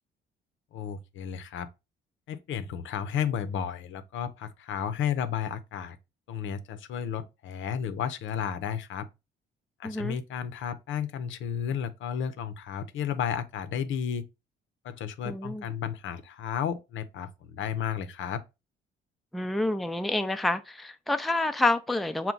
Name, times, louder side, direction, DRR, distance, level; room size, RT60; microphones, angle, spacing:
voice 1, 0.7-1.7 2.3-6.0 6.3-9.1 9.8-14.2 14.8-18.4, left 8 dB, 75° left, 0.7 m, -33 dB
voice 2, 9.8-10.2 15.3-15.6 19.3-22.3, left 2 dB, ahead, 0.4 m, -28 dB
5.8 x 2.2 x 3.8 m
cardioid pair, 90°, 20 cm